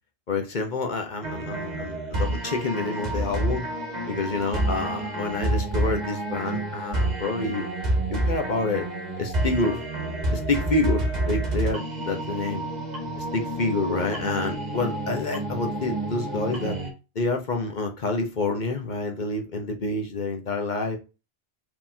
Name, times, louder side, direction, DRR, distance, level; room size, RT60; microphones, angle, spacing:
voice 1, 0.3-3.6 4.1-7.7 8.1-8.9 9.2-9.8 10.3-12.6 13.2-16.8 17.1-21.0, left 3 dB, 40° left, 3 dB, 1.0 m, -28 dB
sound 1, 1.2-16.9, right 1 dB, 35° right, 1.4 m, -29 dB
4.9 x 3.8 x 2.7 m, 0.29 s
omnidirectional pair, 1.2 m